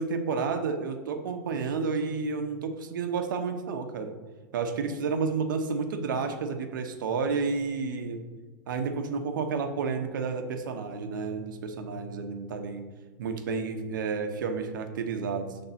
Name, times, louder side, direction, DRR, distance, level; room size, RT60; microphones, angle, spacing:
voice 1, 0.0-4.1 4.5-8.3 8.7-12.9 13.2-15.6, right 5 dB, 90° right, 6 dB, 0.8 m, -31 dB
6.7 x 3.5 x 4.2 m, 1.3 s
supercardioid pair, 155°, 10 cm